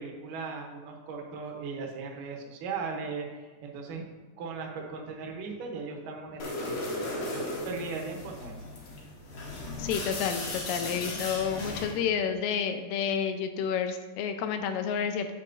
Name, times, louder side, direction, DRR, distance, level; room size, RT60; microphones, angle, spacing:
voice 1, 0.0-4.0 4.4-8.6, right 4 dB, 75° right, 1 dB, 2.5 m, -38 dB
sound 1, 6.4-12.0, left 2 dB, 60° left, 2.3 m, -36 dB
voice 2, 9.8-15.3, left 7 dB, 85° left, 7 dB, 2.3 m, -30 dB
8.3 x 7.6 x 2.6 m, 1.3 s
omnidirectional pair, 3.9 m